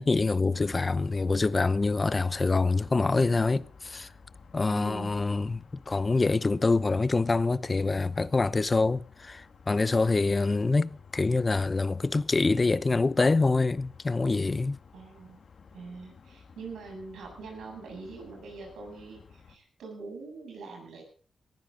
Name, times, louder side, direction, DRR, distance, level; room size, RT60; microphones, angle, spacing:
voice 1, 0.0-4.1 4.5-5.6 5.9-14.8, left 3 dB, 35° left, 0.8 m, -25 dB
sound 1, 0.5-19.6, left 5 dB, 65° left, 1.9 m, -54 dB
voice 2, 4.7-5.1 14.9-15.4 15.7-21.0, right 4 dB, 90° right, 7.6 m, -43 dB
18.5 x 15.0 x 3.8 m
cardioid pair, 55°, 0 cm